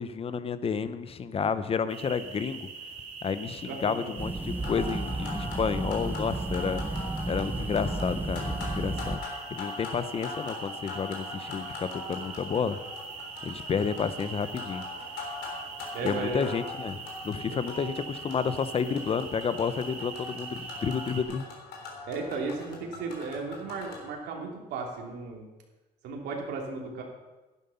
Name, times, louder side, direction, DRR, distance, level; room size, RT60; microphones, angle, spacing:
voice 1, 0.0-2.7 3.2-6.8 7.3-9.2 9.5-12.8 13.4-14.8 16.0-21.4, left 6 dB, 35° left, 13 dB, 0.8 m, -31 dB
sound 1, 1.9-21.2, right 5 dB, 55° right, 3.1 m, -43 dB
sound 2, 4.2-9.2, right 2 dB, 10° right, 0.7 m, -33 dB
sound 3, 4.5-24.1, left 3 dB, 80° left, 3.5 m, -42 dB
voice 2, 15.9-16.4 17.5-17.6 22.1-25.5 26.0-27.0, right 4 dB, 80° right, 0 dB, 2.9 m, -35 dB
11.5 x 11.0 x 5.7 m, 1.1 s
cardioid pair, 110°, 17 cm